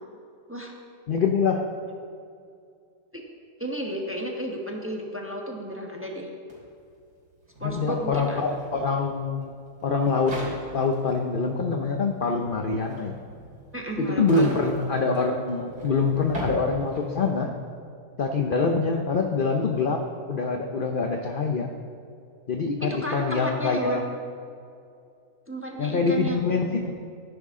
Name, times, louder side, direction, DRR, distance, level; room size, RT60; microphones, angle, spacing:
voice 1, 1.1-1.6 7.6-9.5 9.8-10.4 10.7-13.2 14.0-17.5 18.2-21.7 22.5-24.1 25.8-26.9, left 4 dB, 55° left, 3 dB, 0.6 m, -25 dB
voice 2, 3.6-6.3 7.6-8.5 13.7-14.7 22.8-24.0 25.5-26.4, right 1 dB, 10° right, 0 dB, 1.0 m, -32 dB
sound 1, 6.5-6.6 6.8-17.2, right 1 dB, 85° right, 3.8 m, -39 dB
14.5 x 10.5 x 3.7 m, 2.4 s
omnidirectional pair, 1.7 m